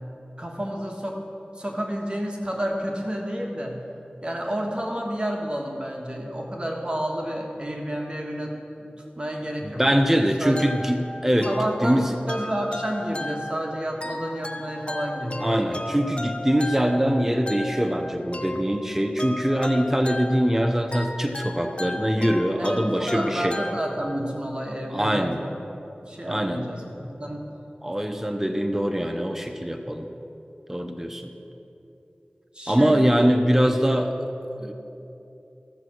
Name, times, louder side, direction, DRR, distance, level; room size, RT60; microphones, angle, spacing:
voice 1, 0.4-1.2 1.5-3.8 4.2-8.5 8.8-8.9 9.1-9.8 10.1-10.6 11.4-15.6 22.6-25.5 26.0-27.4 30.9-31.1 32.5-33.1, equal, 30° right, -1 dB, 1.5 m, -30 dB
voice 2, 9.6-11.5 11.8-12.1 15.4-23.6 24.9-25.4 26.3-26.7 27.8-30.1 30.7-31.3 32.7-34.1 34.6-34.7, equal, 10° right, 4 dB, 0.7 m, -23 dB
sound 1, 10.6-24.4, left 1 dB, 35° left, 0.7 m, -35 dB
14.0 x 7.5 x 6.2 m, 2.9 s
wide cardioid pair, 55°, 3 cm